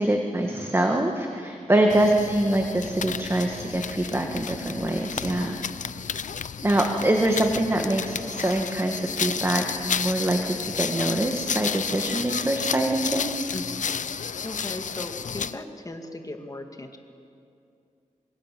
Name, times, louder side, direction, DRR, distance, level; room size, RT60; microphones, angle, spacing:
voice 1, 0.0-5.6 6.6-13.5, right 1 dB, 20° right, 2 dB, 1.8 m, -24 dB
sound 1, 1.9-15.6, left 7 dB, 75° left, 0.6 m, -32 dB
voice 2, 13.5-13.8 14.4-17.0, left 2 dB, 25° left, 5 dB, 2.2 m, -37 dB
26.0 x 23.5 x 7.6 m, 2.5 s
wide cardioid pair, 110°, 13 cm